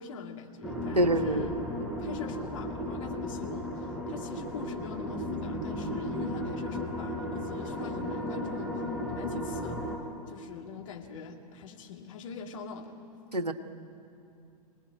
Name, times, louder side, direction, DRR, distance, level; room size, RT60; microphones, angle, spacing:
voice 1, 0.0-1.6 2.0-8.8 9.1-9.8 10.3-13.0, left 6 dB, 55° left, 2 dB, 2.4 m, -43 dB
sound 1, 0.6-10.0, equal, 5° right, 4.3 m, -35 dB
voice 2, 1.0-1.5 13.3-13.5, right 1 dB, 85° right, 8 dB, 1.2 m, -25 dB
25.5 x 19.0 x 9.2 m, 2.6 s
figure-of-eight pair, 100°, 20 cm